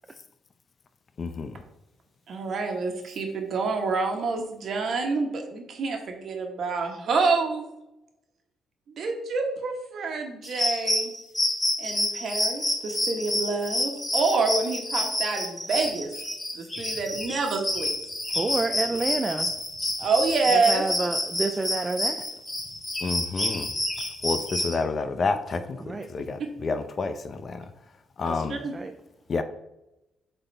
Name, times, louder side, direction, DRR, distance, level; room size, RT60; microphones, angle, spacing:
voice 1, 1.2-1.6 23.0-23.7 24.2-27.7 28.2-28.6 29.3-29.4, left 4 dB, 45° left, 10 dB, 0.6 m, -29 dB
voice 2, 2.3-7.7 9.0-11.1 11.8-16.1 16.5-17.9 20.0-20.8 28.2-28.7, right 4 dB, 60° right, 3 dB, 1.4 m, -27 dB
sound 1, 10.4-24.7, left 1 dB, 20° left, 1.9 m, -28 dB
voice 3, 18.3-19.5 20.5-22.2 25.8-26.1 28.7-28.9, right 3 dB, 25° right, 6 dB, 0.5 m, -28 dB
8.0 x 4.2 x 3.4 m, 0.91 s
cardioid pair, 90°, 0 cm